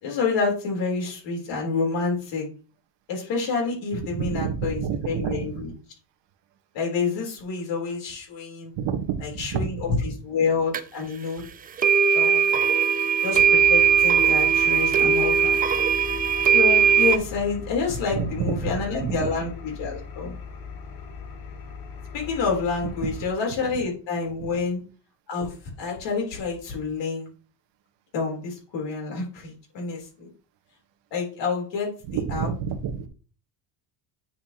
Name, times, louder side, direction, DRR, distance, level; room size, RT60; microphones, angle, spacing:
voice 1, 0.0-2.5 3.1-5.7 6.7-8.7 9.2-11.4 12.1-12.6 13.2-15.6 16.5-20.3 22.1-24.8 25.3-27.3 28.1-30.3 31.1-32.5, left 4 dB, 60° left, 3.6 m, -28 dB
voice 2, 4.1-5.7 8.8-9.9 18.1-18.7 19.0-19.3 23.0-23.1 32.1-33.1, right 7 dB, 60° right, 1.3 m, -29 dB
sound 1, 10.7-10.8 11.8-17.2, right 7 dB, 20° right, 0.3 m, -19 dB
Engine, 13.5-23.3, left 5 dB, 90° left, 2.6 m, -39 dB
9.2 x 4.6 x 2.9 m
cardioid pair, 120°, 48 cm